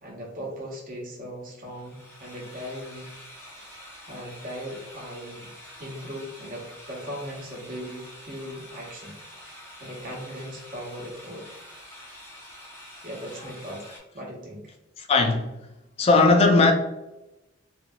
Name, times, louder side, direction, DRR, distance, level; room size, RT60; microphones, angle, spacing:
voice 1, 0.0-3.1 3.5-5.5 5.8-11.6 13.0-14.7, equal, 40° right, 0.8 m, -39 dB
sound 1, 1.6-14.0, left 1 dB, 10° left, 0.7 m, -46 dB
voice 2, 15.0-15.5 16.0-16.7, left 3 dB, 30° left, 0.3 m, -18 dB
2.9 x 2.6 x 2.2 m
head